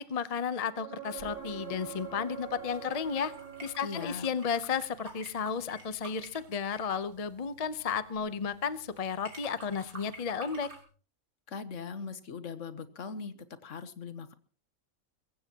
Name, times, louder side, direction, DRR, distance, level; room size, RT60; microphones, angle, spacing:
voice 1, 0.0-3.3 3.6-10.7, left 6 dB, 35° left, 13 dB, 0.7 m, -33 dB
sound 1, 0.7-4.5 8.2-8.3, right 8 dB, 40° right, 3.8 m, -44 dB
sound 2, 1.2-10.8, right 1 dB, 90° right, 3.7 m, -51 dB
voice 2, 3.8-4.3 11.5-14.3, left 5 dB, 60° left, 12 dB, 1.3 m, -40 dB
23.5 x 15.0 x 2.9 m, 0.41 s
omnidirectional pair, 1.5 m